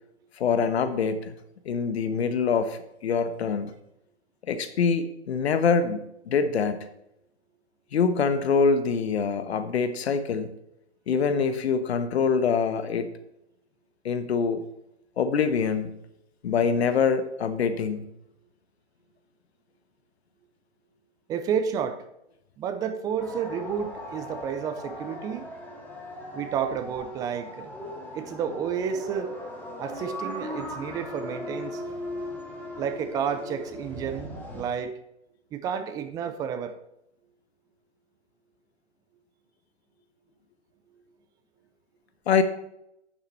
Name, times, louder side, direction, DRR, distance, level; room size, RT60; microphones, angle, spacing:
voice 1, 0.4-1.3 1.6-3.7 4.5-6.9 7.9-10.5 11.1-13.1 14.0-14.6 15.2-15.9 16.4-18.1 42.3-42.4, left 5 dB, 65° left, 11 dB, 1.2 m, -25 dB
voice 2, 21.3-22.0 22.6-25.5 26.3-27.7 28.1-29.3 29.8-31.8 32.8-34.9 35.5-36.7, right 7 dB, 10° right, 9 dB, 0.4 m, -31 dB
sound 1, 23.2-34.6, left 1 dB, 5° left, 1.9 m, -38 dB
9.4 x 6.9 x 4.3 m, 0.82 s
hypercardioid pair, 125°, 34 cm